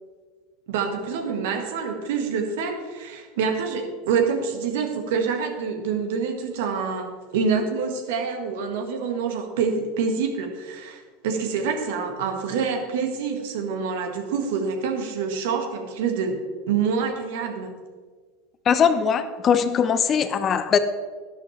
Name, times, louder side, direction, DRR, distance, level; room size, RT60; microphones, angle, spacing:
voice 1, 0.7-16.4 16.7-17.7, right 5 dB, 60° right, 4 dB, 1.7 m, -26 dB
voice 2, 18.7-20.8, left 7 dB, 30° left, 11 dB, 0.8 m, -20 dB
12.0 x 11.5 x 3.3 m, 1.5 s
figure-of-eight pair, 80°, 0 cm